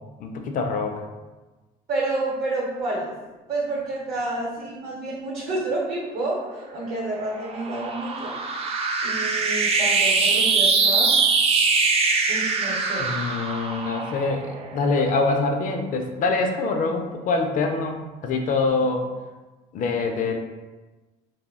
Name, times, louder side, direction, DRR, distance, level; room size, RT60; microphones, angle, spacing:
voice 1, 0.2-1.0 13.0-19.1 19.7-20.4, left 3 dB, 50° left, 4 dB, 0.4 m, -25 dB
voice 2, 1.9-3.1 3.5-8.3 9.0-11.1 12.3-13.1, right 2 dB, 60° right, -5 dB, 0.8 m, -29 dB
sound 1, 6.6-15.3, right 4 dB, 35° right, 0.3 m, -23 dB
2.2 x 2.0 x 3.5 m, 1.2 s
cardioid pair, 110°, 17 cm